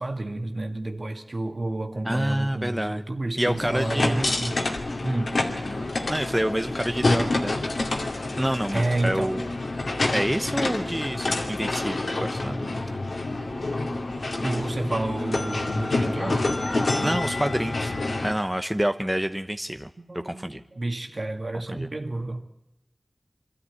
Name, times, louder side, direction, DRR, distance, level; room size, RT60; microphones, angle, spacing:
voice 1, 0.0-4.6 5.0-5.5 8.7-9.3 14.4-16.5 20.0-22.5, right 2 dB, 60° right, 2.0 m, -30 dB
voice 2, 2.0-3.0 3.4-4.3 5.6-7.8 8.4-9.5 10.1-13.0 17.0-17.9 18.2-19.9 20.2-20.6 21.7-21.9, equal, 10° right, 1.0 m, -28 dB
sound 1, 3.5-18.3, left 2 dB, 85° left, 2.4 m, -28 dB
24.0 x 13.5 x 9.5 m
wide cardioid pair, 40°, 0 cm